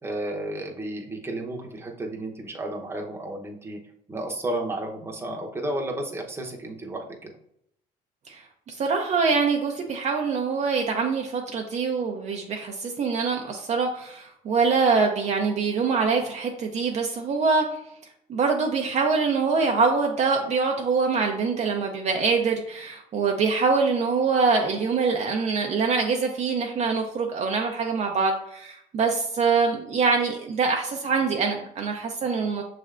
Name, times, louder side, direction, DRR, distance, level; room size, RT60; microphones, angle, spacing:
voice 1, 0.0-3.8 4.1-7.3, right 1 dB, 15° right, 0 dB, 0.8 m, -32 dB
voice 2, 8.3-17.7 18.3-32.6, right 4 dB, 45° right, 2 dB, 0.5 m, -24 dB
6.1 x 3.3 x 2.5 m, 0.73 s
cardioid pair, 110°, 17 cm